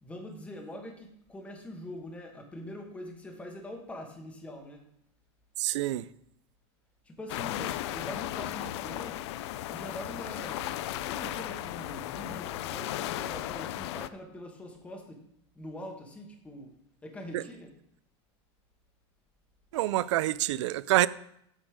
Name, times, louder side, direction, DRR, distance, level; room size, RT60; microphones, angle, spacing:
voice 1, 0.0-4.9 7.0-9.2 9.7-15.2 15.5-16.7 17.0-17.7, left 1 dB, 10° left, 1.2 m, -43 dB
voice 2, 5.6-6.1 17.3-17.4 19.7-21.1, right 15 dB, 85° right, 0.4 m, -26 dB
sound 1, 7.3-14.1, left 14 dB, 70° left, 0.5 m, -35 dB
7.6 x 6.5 x 4.9 m
supercardioid pair, 155°, 15 cm